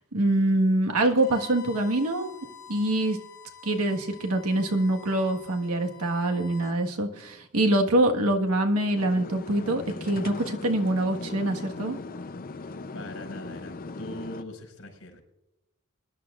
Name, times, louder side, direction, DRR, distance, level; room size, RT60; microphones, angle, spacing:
voice 1, 0.1-2.4 2.7-3.2 3.6-12.0, right 1 dB, 85° right, 3 dB, 1.5 m, -25 dB
Bowed string instrument, 1.1-6.8, left 9 dB, 15° left, 3.7 m, -47 dB
sound 1, 9.0-14.4, left 3 dB, 40° left, 0.6 m, -39 dB
voice 2, 12.6-15.2, left 1 dB, 70° left, 2 dB, 5.0 m, -41 dB
23.0 x 11.0 x 2.4 m, 0.90 s
head